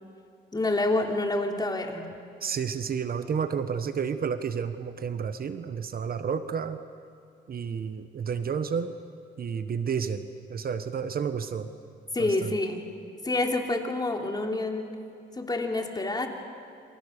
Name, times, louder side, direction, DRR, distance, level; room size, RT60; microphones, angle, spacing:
voice 1, 0.5-2.1 12.1-12.9 13.2-15.0 15.3-16.3, left 2 dB, 20° left, 3 dB, 3.4 m, -28 dB
voice 2, 2.4-6.8 7.5-9.0 9.4-11.7 12.2-12.5, right 6 dB, 50° right, 10 dB, 1.2 m, -31 dB
28.5 x 25.5 x 6.7 m, 2.4 s
cardioid pair, 90°, 20 cm